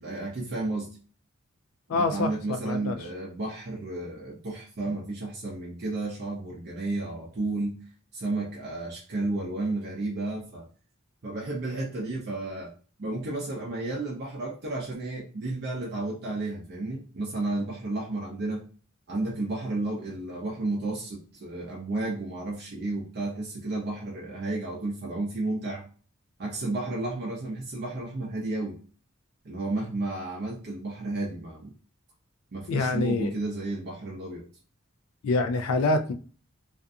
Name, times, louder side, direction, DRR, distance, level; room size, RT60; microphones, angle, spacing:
voice 1, 0.0-1.0 1.9-7.8 8.1-10.7 11.2-12.7 13.0-18.6 19.1-25.8 26.4-28.8 29.4-31.7 32.5-34.4, right 2 dB, 50° right, 0.5 m, -32 dB
voice 2, 1.9-3.0 32.7-33.3 35.2-36.1, left 3 dB, 80° left, 0.3 m, -26 dB
2.5 x 2.3 x 2.5 m
head